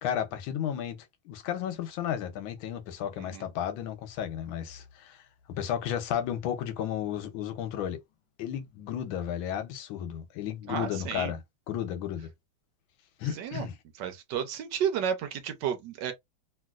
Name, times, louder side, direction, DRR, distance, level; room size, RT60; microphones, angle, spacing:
voice 1, 0.0-5.2 5.5-8.0 8.4-11.4 11.7-12.3 13.2-13.7, left 9 dB, 90° left, 1.5 m, -33 dB
voice 2, 10.7-11.3 13.2-13.7 14.0-16.1, right 8 dB, 70° right, 1.3 m, -32 dB
3.0 x 3.0 x 2.4 m
omnidirectional pair, 2.1 m